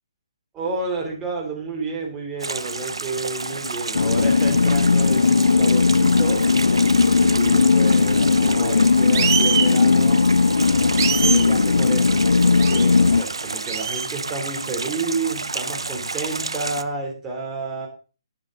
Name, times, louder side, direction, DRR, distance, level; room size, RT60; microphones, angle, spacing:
voice 1, 0.5-6.4 7.2-10.2 11.2-17.9, right 3 dB, 15° right, 0 dB, 3.5 m, -30 dB
sound 1, 2.4-16.8, right 3 dB, 75° right, 0.8 m, -31 dB
sound 2, 3.9-13.2, left 4 dB, 70° left, 0.6 m, -17 dB
sound 3, 9.1-9.7 11.0-11.5 12.6-12.9 13.7-14.1, right 8 dB, 35° right, 1.3 m, -23 dB
11.5 x 10.5 x 4.0 m, 0.35 s
figure-of-eight pair, 140°, 3 cm